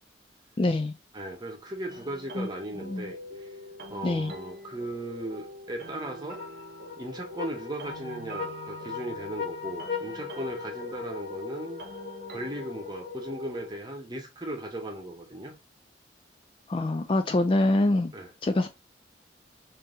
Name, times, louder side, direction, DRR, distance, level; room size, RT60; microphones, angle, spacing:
voice 1, 0.6-0.9 2.4-2.5 2.8-3.1 4.0-4.3 16.7-18.1 18.4-18.7, left 2 dB, 30° left, 0.3 m, -25 dB
voice 2, 1.1-3.2 3.9-6.4 7.0-11.8 12.3-15.5 18.1-18.3, right 1 dB, 25° right, 1.0 m, -37 dB
sound 1, 1.9-13.7, equal, 55° right, 0.8 m, -44 dB
sound 2, 6.4-13.9, left 6 dB, 80° left, 1.2 m, -39 dB
3.7 x 2.8 x 3.8 m
head